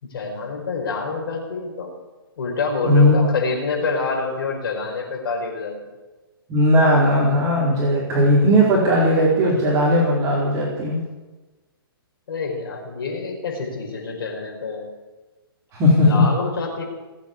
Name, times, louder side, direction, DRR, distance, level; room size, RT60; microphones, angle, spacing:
voice 1, 0.0-1.9 2.4-5.9 12.3-14.9 16.0-16.8, left 4 dB, 65° left, 1 dB, 5.1 m, -27 dB
voice 2, 2.8-3.3 6.5-11.0 15.7-16.3, equal, 25° right, -6 dB, 4.3 m, -17 dB
20.0 x 8.5 x 8.4 m, 1.2 s
hypercardioid pair, 135°, 13 cm